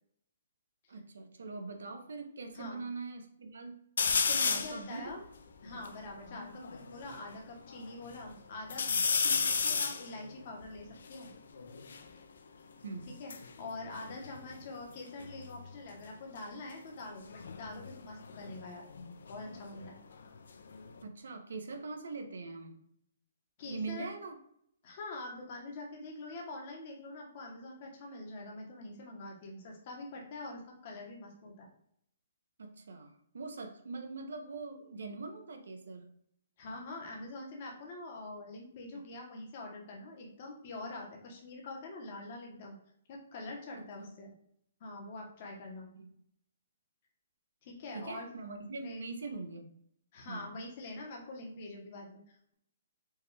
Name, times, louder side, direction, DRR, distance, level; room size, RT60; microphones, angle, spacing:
voice 1, 0.9-3.8 4.4-5.0 8.9-9.0 9.3-9.5 12.8-13.1 21.0-22.8 23.6-24.4 32.6-36.1 43.7-44.1 45.9-46.1 47.9-49.7 50.3-50.5, right 3 dB, 85° right, 5 dB, 0.7 m, -42 dB
sound 1, 4.0-4.8 5.4-5.5 5.6-7.2 7.7-8.3 8.7-12.1 13.0-14.9 15.2-15.7 17.2-19.9 20.2-21.0, left 5 dB, 75° left, 0.4 m, -34 dB
voice 2, 4.3-5.2 5.6-8.8 9.2-11.3 13.2-13.3 13.6-18.9 19.3-20.0 23.6-24.1 24.8-31.7 36.6-42.7 43.1-44.3 44.8-45.9 47.6-48.3 48.8-49.1 50.1-52.5, left 2 dB, 35° left, 0 dB, 0.8 m, -45 dB
4.5 x 2.3 x 3.1 m, 0.70 s
hypercardioid pair, 175°, 0 cm